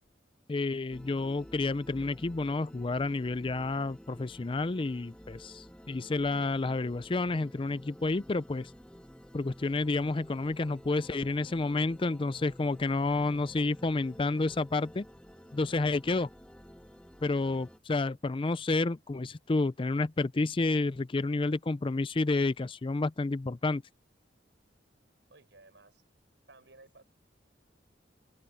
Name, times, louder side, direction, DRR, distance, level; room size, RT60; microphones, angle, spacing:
voice 1, 0.5-8.7 9.3-15.1 15.5-16.3 17.2-23.8, left 3 dB, 30° left, 0.5 m, -30 dB
sound 1, 0.9-17.8, equal, 5° left, 1.1 m, -52 dB
voice 2, 25.3-26.0 26.5-27.0, right 2 dB, 80° right, 5.9 m, -56 dB
head